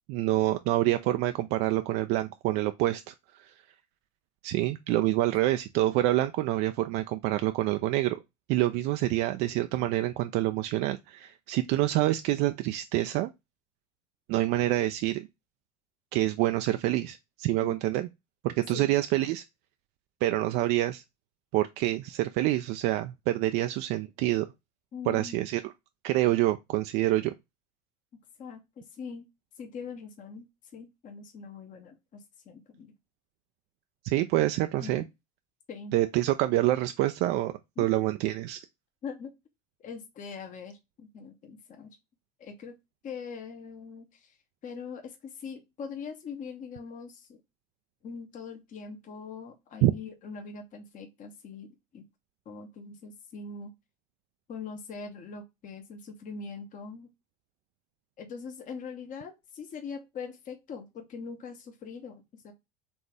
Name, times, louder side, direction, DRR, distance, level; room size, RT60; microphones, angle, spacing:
voice 1, 0.1-3.5 4.4-8.2 8.5-13.3 14.3-15.3 16.1-18.1 18.4-19.4 20.2-21.0 21.5-24.5 25.1-25.7 26.0-27.3 34.0-35.0 35.9-38.6 49.8-49.9, right 15 dB, 50° right, 0.4 m, -27 dB
voice 2, 24.9-25.4 28.4-29.2 29.6-30.5 30.7-32.9 34.8-35.0 35.7-36.0 37.8-38.0 39.0-39.3 39.8-41.9 42.4-42.7 43.0-44.3 44.6-47.4 48.0-52.0 52.5-53.7 54.5-57.1 58.2-62.5, left 5 dB, 40° left, 1.1 m, -42 dB
4.3 x 3.3 x 3.3 m
hypercardioid pair, 75°, 21 cm